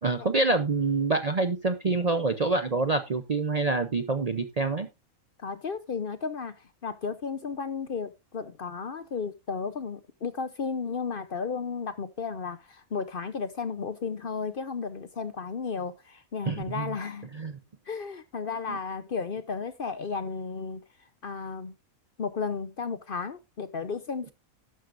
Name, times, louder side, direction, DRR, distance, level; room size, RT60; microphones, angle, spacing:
voice 1, 0.0-4.9 16.5-16.9 17.3-17.5 18.7-18.8, right 3 dB, 40° right, 0.6 m, -26 dB
voice 2, 5.4-17.3 17.9-20.8 21.2-21.7 22.2-24.3, left 5 dB, 50° left, 0.8 m, -34 dB
12.0 x 9.4 x 2.5 m
omnidirectional pair, 1.4 m